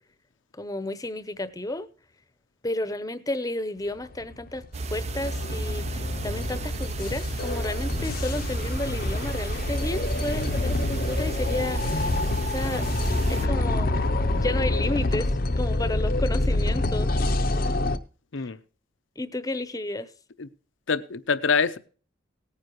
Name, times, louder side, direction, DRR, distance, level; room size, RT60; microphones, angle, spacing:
voice 1, 0.5-1.9 2.6-4.6 4.9-12.9 13.3-13.9 14.3-15.3 15.6-17.2 18.4-18.5 19.2-20.1, left 1 dB, 20° left, 0.8 m, -32 dB
sound 1, 4.0-18.0, left 2 dB, 50° left, 0.7 m, -27 dB
sound 2, 4.7-13.5, right 2 dB, 35° right, 0.5 m, -32 dB
voice 2, 20.9-21.8, left 5 dB, 90° left, 0.7 m, -25 dB
18.0 x 9.8 x 3.0 m
head